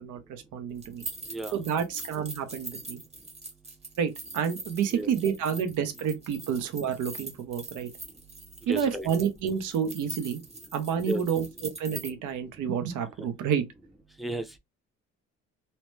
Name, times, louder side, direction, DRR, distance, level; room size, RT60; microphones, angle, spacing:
voice 1, 0.0-1.1 1.5-3.0 4.0-7.9 8.7-10.4 10.7-13.6, right 7 dB, 80° right, 0.7 m, -29 dB
sound 1, 0.8-12.1, right 2 dB, 20° right, 0.8 m, -42 dB
voice 2, 1.2-1.6 2.9-3.0 4.9-5.1 8.6-9.1 11.0-11.2 13.2-13.3 14.2-14.6, right 1 dB, ahead, 0.5 m, -34 dB
2.8 x 2.0 x 3.2 m
cardioid pair, 90°, 30 cm